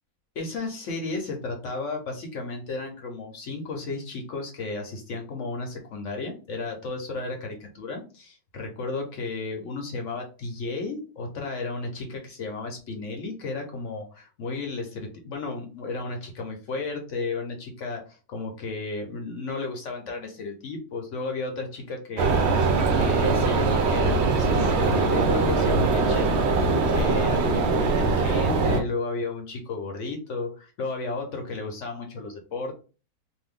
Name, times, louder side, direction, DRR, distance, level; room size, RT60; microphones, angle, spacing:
voice 1, 0.4-26.4 26.9-32.7, left 3 dB, 60° left, 2 dB, 0.9 m, -33 dB
sound 1, 22.2-28.8, right 3 dB, 60° right, 0.7 m, -22 dB
2.6 x 2.6 x 3.5 m, 0.34 s
omnidirectional pair, 1.8 m